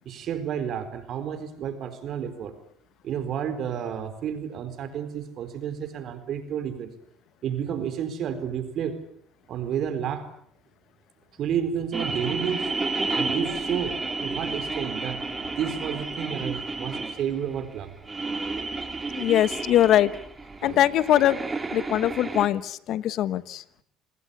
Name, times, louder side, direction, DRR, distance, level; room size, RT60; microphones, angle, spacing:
voice 1, 0.0-2.5 3.0-6.9 7.4-9.0 9.5-10.3 11.4-12.7 13.2-17.9 20.6-20.8, right 8 dB, 60° right, 9 dB, 4.4 m, -31 dB
sound 1, 11.9-22.5, right 3 dB, 20° right, 3.8 m, -31 dB
voice 2, 19.2-20.1 20.6-21.4 21.7-23.6, left 12 dB, 65° left, 16 dB, 1.2 m, -22 dB
27.5 x 20.0 x 8.4 m, 0.68 s
supercardioid pair, 75°, 0 cm